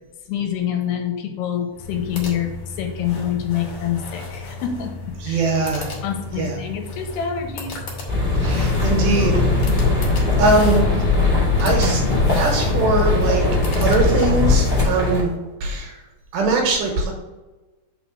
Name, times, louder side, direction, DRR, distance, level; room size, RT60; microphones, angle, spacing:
voice 1, 0.3-4.9 5.3-5.4 6.0-7.8, left 9 dB, 80° left, 4 dB, 2.7 m, -26 dB
sound 1, 1.7-14.7, left 3 dB, 55° left, 2.0 m, -34 dB
voice 2, 5.2-6.0 6.4-6.6 8.4-10.0 10.4-10.9 11.6-12.0 12.3-13.5 13.8-15.3 15.6-16.0 16.3-17.1, right 3 dB, 70° right, 1 dB, 2.8 m, -21 dB
sound 2, 8.1-15.2, left 3 dB, 20° left, 1.6 m, -19 dB
5.7 x 4.2 x 6.1 m, 1.2 s
omnidirectional pair, 4.8 m